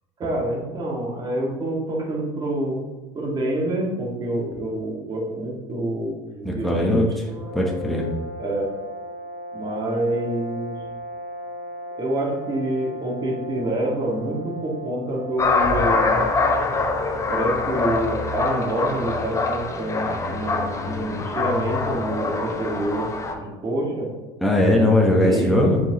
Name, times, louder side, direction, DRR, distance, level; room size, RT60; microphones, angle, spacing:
voice 1, 0.2-2.8 3.1-7.0 8.4-8.7 9.5-10.8 12.0-16.2 17.3-23.1 23.4-24.1 25.2-25.5, right 1 dB, 30° right, -2 dB, 1.9 m, -27 dB
voice 2, 6.4-7.2 7.5-8.1 24.4-25.8, left 1 dB, ahead, -2 dB, 1.1 m, -19 dB
sound 1, 7.2-16.2, equal, 75° right, 1.8 m, -36 dB
sound 2, 15.4-23.3, left 3 dB, 20° left, 0.8 m, -24 dB
7.2 x 5.1 x 3.0 m, 1.2 s
supercardioid pair, 105°, 14 cm